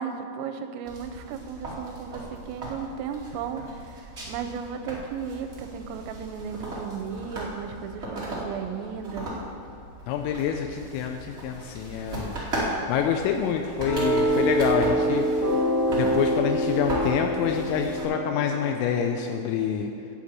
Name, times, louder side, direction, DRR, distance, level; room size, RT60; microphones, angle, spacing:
voice 1, 0.0-9.3, right 7 dB, 85° right, 7 dB, 3.4 m, -35 dB
sound 1, 0.8-18.0, right 1 dB, 70° right, 0.6 m, -37 dB
voice 2, 10.1-12.4 12.9-15.3 15.9-19.9, left 8 dB, 85° left, 4 dB, 3.2 m, -27 dB
sound 2, 13.8-19.3, equal, 30° left, 2.2 m, -26 dB
8.2 x 8.0 x 8.7 m, 2.8 s
omnidirectional pair, 5.8 m